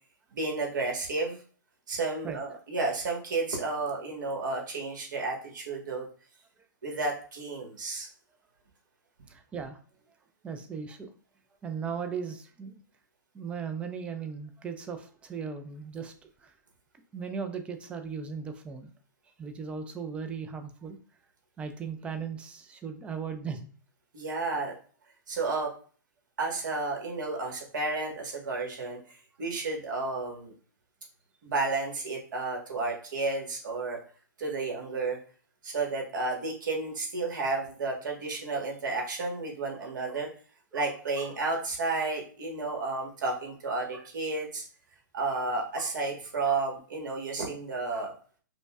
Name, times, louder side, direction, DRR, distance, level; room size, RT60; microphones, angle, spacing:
voice 1, 0.3-1.4 1.9-6.1 6.8-8.1 24.1-24.7 25.3-25.7 26.4-29.0 29.4-30.5 31.4-34.0 34.4-35.2 35.6-40.3 40.7-44.6 45.1-48.1, right 3 dB, 65° right, 0 dB, 1.4 m, -32 dB
voice 2, 9.3-9.8 10.4-11.1 11.6-12.8 13.3-16.1 16.4-16.5 17.1-18.9 19.4-21.0 21.6-23.7 39.7-40.3 40.7-40.9 41.2-41.3 43.9-44.1 45.3-45.4 45.7-45.9 46.5-46.6 47.9-48.1, right 6 dB, 10° right, 7 dB, 0.4 m, -38 dB
5.1 x 2.2 x 2.3 m, 0.41 s
hypercardioid pair, 140°, 11 cm